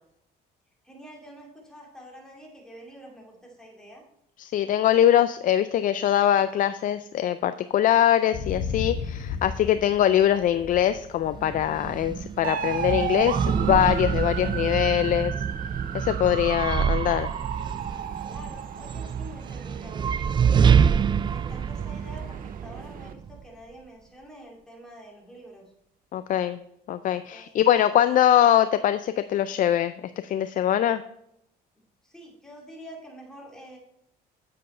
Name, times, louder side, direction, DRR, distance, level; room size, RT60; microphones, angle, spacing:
voice 1, 0.8-4.0 18.2-20.9 21.3-25.6 27.1-27.6 32.0-33.8, equal, 5° left, -2 dB, 2.6 m, -46 dB
voice 2, 4.4-15.3 15.9-17.3 26.1-26.6 26.9-31.0, left 11 dB, 55° left, 12 dB, 0.4 m, -22 dB
sound 1, 8.3-16.2, left 5 dB, 70° left, 1.2 m, -37 dB
sound 2, 11.3-23.4, right 7 dB, 25° right, 0.3 m, -26 dB
sound 3, 12.4-23.1, right 9 dB, 55° right, 0.7 m, -35 dB
7.6 x 7.6 x 4.3 m, 0.76 s
cardioid pair, 110°, 17 cm